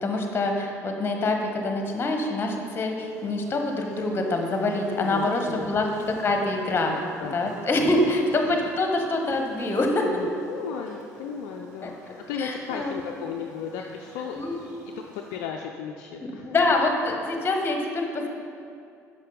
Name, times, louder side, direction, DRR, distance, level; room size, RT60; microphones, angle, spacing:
voice 1, 0.0-7.0 7.3-10.1 11.8-11.9 12.4-13.0 14.3-14.6 16.2-18.3, left 2 dB, 25° left, 3 dB, 1.3 m, -25 dB
Buzz, 3.1-15.4, right 1 dB, 65° right, 1.5 m, -48 dB
voice 2, 5.0-5.7 7.2-8.1 10.0-16.6, left 7 dB, 60° left, 2 dB, 0.5 m, -35 dB
10.5 x 6.0 x 3.9 m, 2.4 s
figure-of-eight pair, 55°, 9 cm